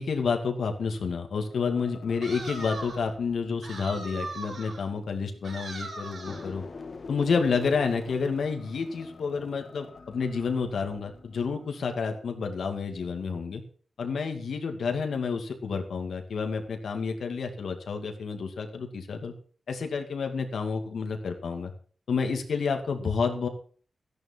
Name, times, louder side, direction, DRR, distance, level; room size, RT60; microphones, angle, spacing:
voice 1, 0.0-6.6 7.1-13.6 14.0-19.3 19.7-21.7 22.1-23.5, left 5 dB, 80° left, 4 dB, 2.3 m, -29 dB
sound 1, 1.5-5.5 5.9-12.6 13.0-13.2, left 4 dB, 50° left, 1.9 m, -47 dB
sound 2, 2.2-3.1 3.6-4.9 5.4-6.5, right 3 dB, 75° right, 5.6 m, -39 dB
14.5 x 11.0 x 4.5 m, 0.43 s
wide cardioid pair, 130°, 0 cm